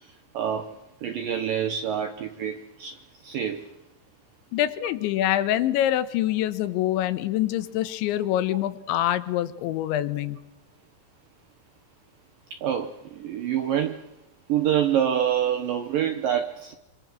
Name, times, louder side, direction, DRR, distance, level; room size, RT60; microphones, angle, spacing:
voice 1, 0.3-0.8 1.0-3.7 12.5-14.0 14.5-16.7, right 9 dB, 70° right, 6 dB, 2.1 m, -26 dB
voice 2, 4.5-10.4, left 12 dB, 80° left, 12 dB, 3.3 m, -25 dB
26.0 x 25.0 x 6.3 m, 0.90 s
omnidirectional pair, 5.3 m